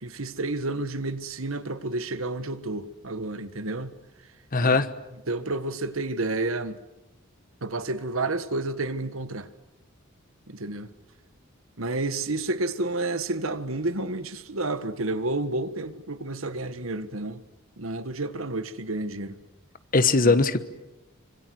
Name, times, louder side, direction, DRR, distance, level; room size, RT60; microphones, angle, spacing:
voice 1, 0.0-3.9 4.6-4.8 5.3-6.8 7.6-9.5 10.5-10.9 11.8-17.4 17.8-19.4 20.2-20.4, right 2 dB, 80° right, 1.6 m, -30 dB
voice 2, 4.5-4.9 19.9-20.6, left 3 dB, 40° left, 1.3 m, -20 dB
26.5 x 25.0 x 7.8 m
head